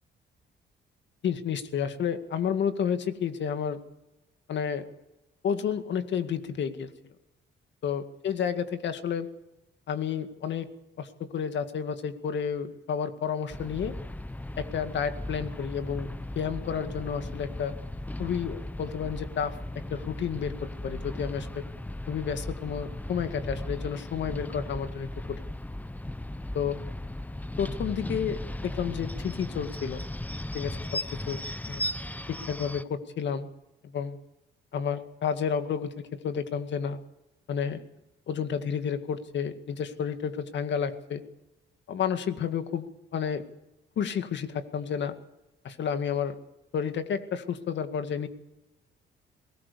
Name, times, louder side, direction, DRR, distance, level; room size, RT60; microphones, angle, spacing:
voice 1, 1.2-3.8 4.5-4.8 5.4-6.9 7.8-9.3 9.9-10.7 11.0-13.9 14.6-16.1 16.4-17.7 18.2-19.6 19.9-20.6 20.8-21.6 22.1-25.4 26.5-26.8 27.6-30.1 30.5-30.8 31.3-31.4 31.7-31.8 32.3-33.5 33.9-34.2 34.7-37.0 37.5-37.8 38.3-41.2 41.9-42.9 43.1-43.4 44.0-45.1 45.6-46.4 46.7-48.3, left 7 dB, 65° left, 9 dB, 2.1 m, -31 dB
sound 1, 13.5-32.8, left 1 dB, 10° left, 0.8 m, -37 dB
20.5 x 19.0 x 6.9 m, 0.95 s
cardioid pair, 90°, 20 cm